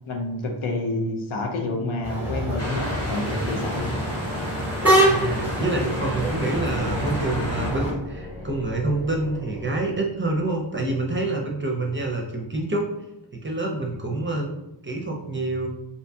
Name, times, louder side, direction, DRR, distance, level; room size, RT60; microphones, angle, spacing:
voice 1, 0.1-4.0, left 2 dB, 90° left, 1 dB, 0.6 m, -28 dB
sound 1, 2.0-7.9, right 1 dB, 5° right, 0.8 m, -25 dB
sound 2, 2.3-10.6, left 1 dB, 60° left, 0.9 m, -38 dB
sound 3, 2.6-7.7, left 1 dB, 35° left, 0.8 m, -35 dB
voice 2, 5.0-12.9 13.3-14.5 14.8-15.7, right 2 dB, 25° right, 0 dB, 0.4 m, -27 dB
2.6 x 2.2 x 2.6 m, 0.89 s
wide cardioid pair, 60°, 47 cm